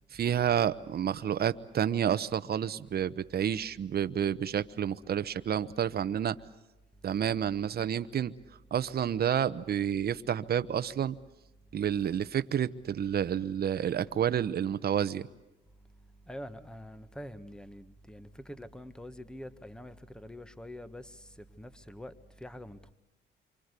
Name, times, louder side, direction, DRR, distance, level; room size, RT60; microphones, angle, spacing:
voice 1, 0.1-6.4 7.0-8.3 8.7-11.2 11.7-15.3, right 9 dB, 50° right, 1.0 m, -29 dB
voice 2, 16.3-22.9, equal, 5° left, 1.4 m, -45 dB
27.0 x 24.5 x 8.2 m
cardioid pair, 90°, 20 cm